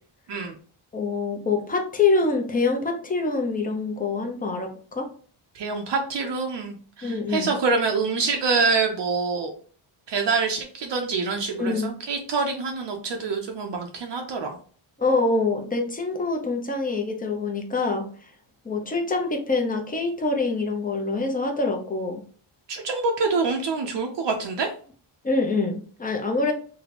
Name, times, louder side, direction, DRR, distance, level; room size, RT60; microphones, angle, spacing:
voice 1, 0.9-5.1 7.0-7.6 11.6-12.0 15.0-18.1 18.6-22.2 25.2-26.5, left 3 dB, 15° left, 3 dB, 0.6 m, -25 dB
voice 2, 5.5-9.5 10.1-14.6 22.7-24.7, right 4 dB, 60° right, 3 dB, 0.6 m, -26 dB
2.9 x 2.2 x 4.0 m, 0.43 s
wide cardioid pair, 130°, 50 cm